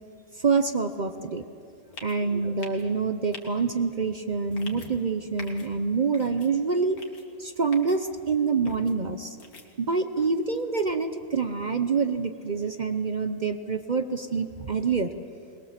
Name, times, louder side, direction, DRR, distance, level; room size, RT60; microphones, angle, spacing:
voice 1, 0.4-1.4 2.0-7.0 7.4-9.4 9.8-15.1, right 4 dB, 45° right, 9 dB, 0.6 m, -26 dB
sound 1, 1.9-2.2 2.6-2.8 3.3-3.4 4.5-4.9 5.4-5.7 6.1-6.5 7.0-7.2 7.7-8.0 8.7-8.9 9.4-9.7, left 4 dB, 65° left, 2.3 m, -44 dB
21.5 x 20.5 x 7.4 m, 2.6 s
omnidirectional pair, 1.7 m